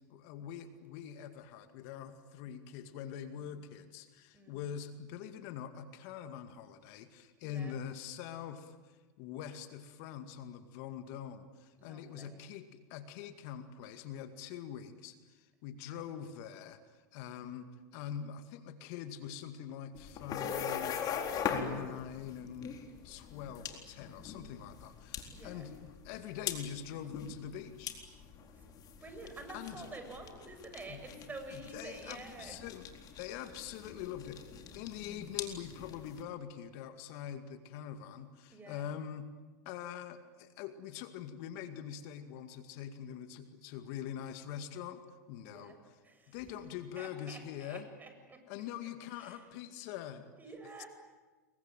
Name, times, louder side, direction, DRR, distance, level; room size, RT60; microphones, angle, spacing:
voice 1, 0.1-21.0 21.5-22.7 23.0-27.9 29.5-29.8 30.9-31.0 31.5-32.9 33.2-39.3 39.7-45.0 45.3-46.0 46.3-47.9 48.5-50.3 50.8-50.9, left 9 dB, 60° left, 8 dB, 2.2 m, -44 dB
voice 2, 11.8-12.4 25.3-25.6 28.6-28.7 29.0-32.6 38.5-38.8 45.4-45.8 46.0-46.4 47.0-48.4 49.2-49.4 50.4-50.9, right 2 dB, 20° right, 6 dB, 7.5 m, -49 dB
sound 1, 19.9-36.2, left 7 dB, 40° left, 4.0 m, -42 dB
27.5 x 23.0 x 9.2 m, 1.3 s
hypercardioid pair, 100°, 10 cm